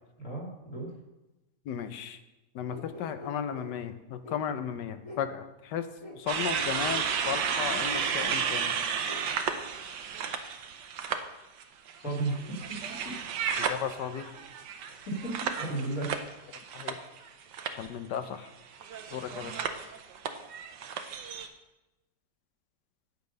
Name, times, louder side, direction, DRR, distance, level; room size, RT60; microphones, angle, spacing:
voice 1, 0.2-0.9 12.0-12.8 13.0-13.1 15.1-16.1, right 2 dB, 55° left, -4 dB, 3.4 m, -34 dB
voice 2, 1.7-2.2 2.5-5.9 6.1-8.7 13.6-14.3 16.7-17.0 17.8-18.5 19.1-19.6, left 8 dB, 85° left, 10 dB, 1.4 m, -35 dB
sound 1, 2.7-3.7 4.2-4.4 5.0-5.3 6.0-6.2 6.8-6.9 7.2-7.4 8.0-8.1 9.0-9.2, left 2 dB, 25° left, 1.8 m, -45 dB
sound 2, 6.3-11.2 11.6-17.3 17.5-17.9 18.8-21.5, right 7 dB, 85° right, 1.4 m, -33 dB
9.2 x 8.5 x 5.3 m, 1.0 s
omnidirectional pair, 1.8 m